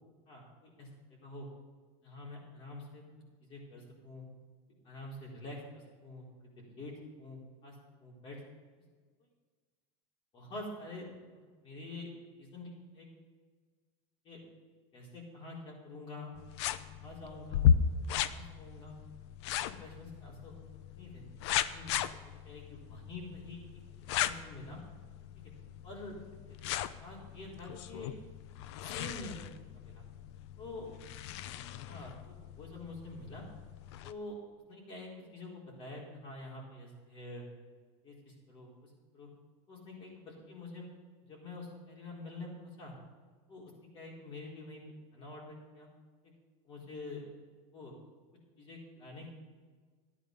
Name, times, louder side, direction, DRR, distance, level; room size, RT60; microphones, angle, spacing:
voice 1, 0.3-0.9 1.2-1.5 2.0-3.0 3.4-4.3 4.8-7.7 8.0-8.4 10.3-11.1 11.6-12.1 12.4-13.1 14.2-14.4 14.9-16.3 16.9-17.6 18.3-19.0 19.6-20.6 20.9-21.2 21.7-21.9 22.4-23.8 24.2-24.8 25.3-25.5 25.8-26.2 26.5-26.6 27.0-28.1 28.8-29.4 29.7-30.0 30.6-30.9 31.9-33.5 34.0-34.4 34.7-37.4 38.0-39.3 39.7-40.9 41.2-42.9 43.5-44.8 45.1-45.9 46.6-47.2 47.7-47.9 48.6-49.3, left 2 dB, 35° left, -2 dB, 4.2 m, -47 dB
sound 1, 16.4-34.1, left 8 dB, 80° left, 0.6 m, -36 dB
12.5 x 10.0 x 5.4 m, 1.5 s
supercardioid pair, 140°, 14 cm